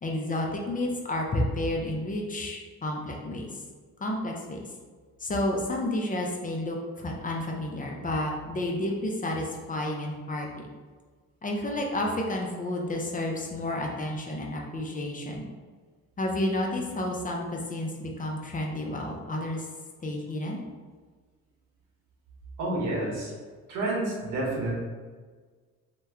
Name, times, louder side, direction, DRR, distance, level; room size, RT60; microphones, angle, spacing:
voice 1, 0.0-3.5 4.0-4.6 5.2-10.7 11.4-15.4 16.2-19.7 20.0-20.6, left 1 dB, 25° left, 0 dB, 0.6 m, -31 dB
voice 2, 22.6-23.3 23.7-24.7, right 2 dB, 85° right, -4 dB, 1.2 m, -29 dB
2.9 x 2.2 x 3.5 m, 1.5 s
cardioid pair, 90°, 30 cm